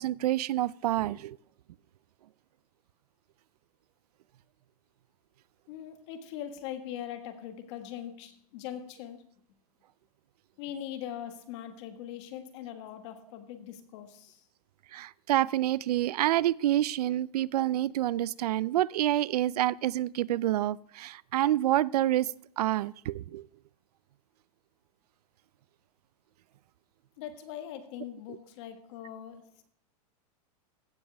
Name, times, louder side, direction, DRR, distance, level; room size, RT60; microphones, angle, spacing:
voice 1, 0.0-1.4 14.9-22.3 22.6-23.5, right 13 dB, 90° right, 22 dB, 0.4 m, -28 dB
voice 2, 5.7-9.3 10.6-14.4 27.2-29.7, left 10 dB, 50° left, 7 dB, 1.6 m, -41 dB
15.5 x 7.3 x 3.4 m, 0.66 s
supercardioid pair, 155°, 19 cm